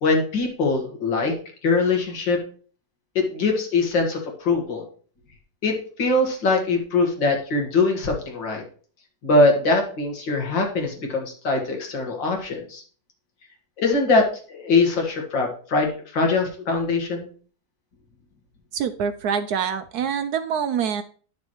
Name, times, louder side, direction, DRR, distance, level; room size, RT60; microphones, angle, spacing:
voice 1, 0.0-1.3 1.6-2.4 3.2-4.8 5.6-8.6 9.2-12.8 13.8-17.3, left 3 dB, 85° left, 1 dB, 2.4 m, -22 dB
voice 2, 18.7-21.0, right 7 dB, 70° right, 11 dB, 1.0 m, -25 dB
10.5 x 6.3 x 3.0 m, 0.43 s
omnidirectional pair, 2.0 m